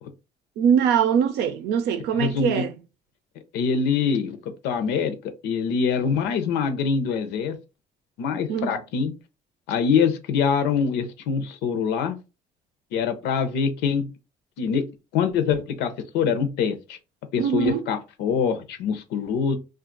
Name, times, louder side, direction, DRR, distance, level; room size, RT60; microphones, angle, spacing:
voice 1, 0.6-2.7 8.5-8.8 17.4-17.8, right 8 dB, 85° right, 0.6 m, -22 dB
voice 2, 2.2-2.6 3.5-7.6 8.2-9.1 9.7-12.2 12.9-14.1 14.6-14.8 15.1-17.0 17.3-19.6, left 6 dB, 90° left, 0.6 m, -24 dB
2.5 x 2.3 x 3.8 m
cardioid pair, 110°, 17 cm